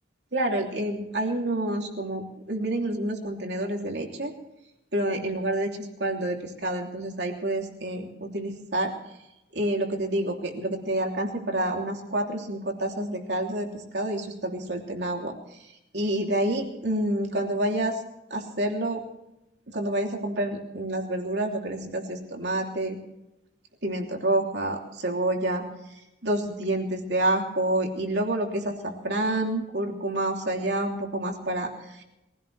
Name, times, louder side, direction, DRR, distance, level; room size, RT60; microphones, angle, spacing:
voice 1, 0.3-4.3 4.9-8.9 9.5-13.7 13.9-18.0 18.3-19.0 19.7-23.0 23.8-32.0, right 1 dB, 65° right, 2 dB, 3.1 m, -28 dB
22.5 x 16.5 x 3.4 m, 0.90 s
head